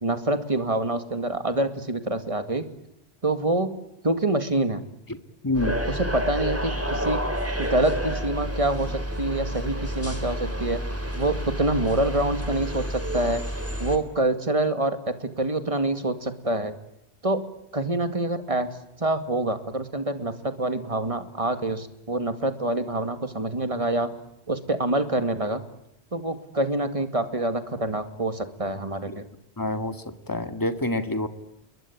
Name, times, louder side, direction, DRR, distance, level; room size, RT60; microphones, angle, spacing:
voice 1, 0.0-2.6 3.2-3.8 4.0-4.8 5.9-7.3 7.6-10.8 11.2-13.4 13.8-16.8 17.2-24.2 24.5-25.6 26.1-29.2, right 2 dB, 30° right, 9 dB, 2.3 m, -26 dB
voice 2, 5.4-5.8 29.1-29.2 29.6-30.0 30.3-31.3, left 2 dB, 20° left, 9 dB, 2.0 m, -27 dB
sound 1, 5.5-14.0, equal, 10° right, 3.4 m, -29 dB
29.0 x 22.5 x 8.7 m, 0.81 s
omnidirectional pair, 1.1 m